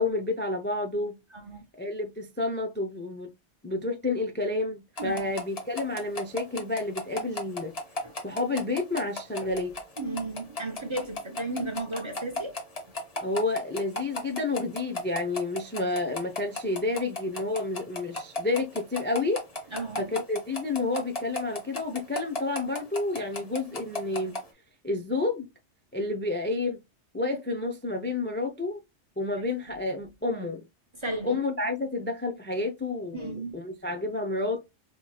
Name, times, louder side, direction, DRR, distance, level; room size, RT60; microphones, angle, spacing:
voice 1, 0.0-1.2 1.8-3.3 3.6-7.7 8.2-9.7 13.2-19.4 20.0-24.4 24.8-25.5 25.9-26.8 27.1-28.8 29.2-30.6 31.2-34.6, left 2 dB, 20° left, 0.3 m, -30 dB
sound 1, 5.0-24.4, left 2 dB, 35° left, 1.0 m, -34 dB
voice 2, 5.0-5.4 9.4-9.5 10.0-12.5 19.7-20.1 31.0-31.4 33.1-33.6, right 2 dB, 35° right, 0.5 m, -34 dB
4.5 x 2.9 x 2.3 m
omnidirectional pair, 1.2 m